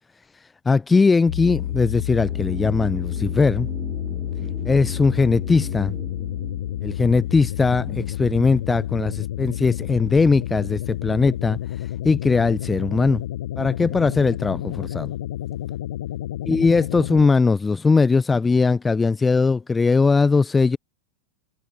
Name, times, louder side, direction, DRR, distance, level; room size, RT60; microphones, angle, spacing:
voice 1, 0.7-3.7 4.6-5.9 6.8-11.6 12.0-13.2 13.6-15.1 16.5-20.8, left 4 dB, 15° left, 0.7 m, -20 dB
sound 1, 1.3-17.3, left 12 dB, 60° left, 0.9 m, -30 dB
sound 2, 2.2-8.3 8.5-8.6, right 10 dB, 30° right, 2.1 m, -41 dB
figure-of-eight pair, 90°, 0 cm